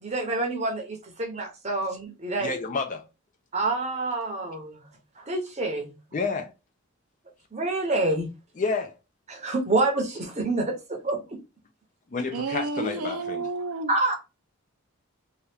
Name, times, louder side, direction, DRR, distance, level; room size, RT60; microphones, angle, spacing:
voice 1, 0.0-2.5 3.5-4.8 5.2-5.9 7.5-8.3 9.3-11.2 13.9-14.2, right 2 dB, 30° right, 0.7 m, -27 dB
voice 2, 2.4-3.0 6.1-6.5 8.6-8.9 12.1-13.4, left 4 dB, 35° left, 0.4 m, -29 dB
voice 3, 12.3-13.9, right 3 dB, 80° right, 0.6 m, -31 dB
2.8 x 2.3 x 3.3 m
head